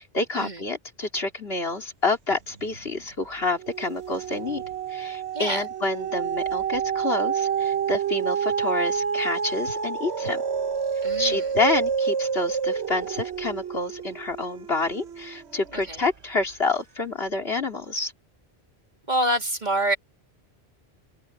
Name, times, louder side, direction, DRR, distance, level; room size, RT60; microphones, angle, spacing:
voice 1, 0.0-4.6 4.9-10.4 11.2-18.1, left 3 dB, 65° left, 3.5 m, -28 dB
sound 1, 2.5-3.1 3.4-15.9 16.4-16.5, right 7 dB, 85° right, 1.3 m, -28 dB
voice 2, 5.3-5.7 11.0-11.5 15.7-16.0 19.1-20.0, right 1 dB, 45° right, 2.4 m, -26 dB
open air
omnidirectional pair, 1.1 m